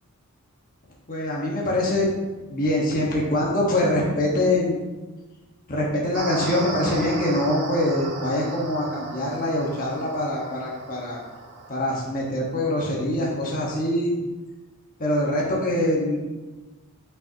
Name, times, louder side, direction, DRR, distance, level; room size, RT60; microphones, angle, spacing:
voice 1, 1.1-2.1 2.5-4.8 5.7-11.2 11.7-14.1 15.0-16.3, left 1 dB, 40° left, -4 dB, 1.4 m, -24 dB
sound 1, 6.1-11.7, right 3 dB, 50° right, 1.1 m, -35 dB
8.8 x 5.7 x 2.9 m, 1.2 s
head